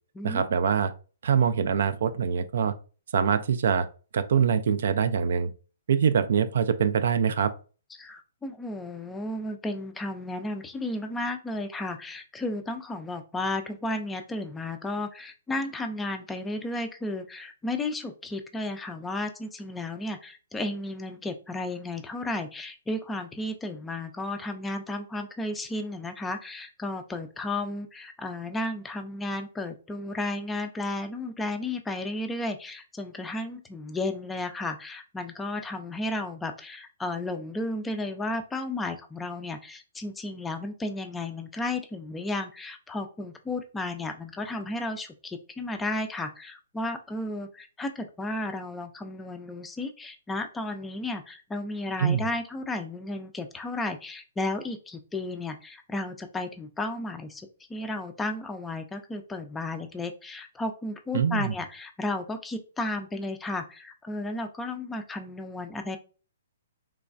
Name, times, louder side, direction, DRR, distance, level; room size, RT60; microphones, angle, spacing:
voice 1, 0.2-0.9 1.2-2.7 3.1-3.9 4.1-5.5 5.9-7.5 52.0-52.2 61.1-61.5, right 7 dB, 65° right, 0.3 m, -24 dB
voice 2, 8.0-66.0, left 2 dB, 10° left, 0.4 m, -33 dB
3.2 x 2.2 x 2.5 m
hypercardioid pair, 135°, 0 cm